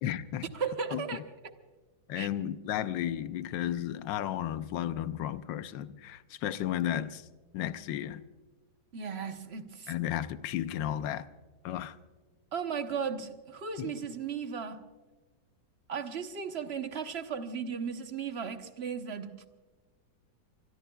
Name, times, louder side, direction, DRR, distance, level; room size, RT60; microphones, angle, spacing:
voice 1, 0.0-0.5 0.9-1.2 2.1-7.3 7.5-8.2 9.9-11.3 11.6-12.0 13.8-13.9, left 11 dB, 80° left, 13 dB, 1.4 m, -33 dB
voice 2, 0.5-1.5 2.1-2.3 8.9-9.9 12.5-14.8 15.9-19.5, right 6 dB, 40° right, 7 dB, 1.0 m, -36 dB
24.5 x 21.5 x 2.3 m, 1.3 s
omnidirectional pair, 2.0 m